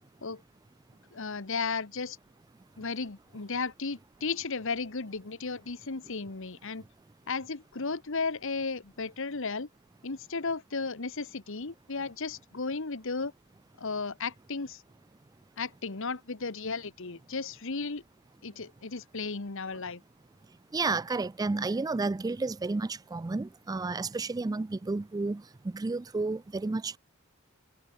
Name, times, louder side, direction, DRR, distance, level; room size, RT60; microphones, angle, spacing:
voice 1, 1.1-2.2 2.8-6.8 7.3-9.7 10.0-13.3 13.8-14.8 15.6-18.0 18.4-20.0, left 4 dB, 65° left, 1.3 m, -34 dB
voice 2, 20.7-27.0, right 3 dB, 15° right, 0.3 m, -31 dB
head